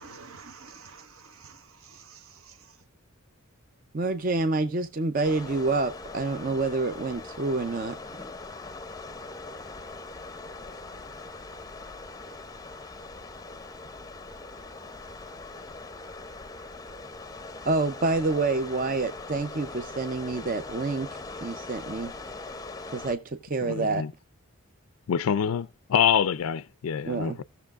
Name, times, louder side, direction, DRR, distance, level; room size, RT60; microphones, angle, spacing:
voice 1, 0.0-2.8, right 5 dB, 70° right, 1.1 m, -49 dB
voice 2, 3.9-8.0 17.6-21.1 21.4-22.1 22.9-24.0 27.1-27.4, right 3 dB, 40° right, 0.6 m, -27 dB
sound 1, 5.2-23.2, left 3 dB, 15° left, 0.6 m, -41 dB
voice 3, 23.6-24.1 25.1-27.4, left 8 dB, 75° left, 0.4 m, -26 dB
17.0 x 6.8 x 2.4 m
head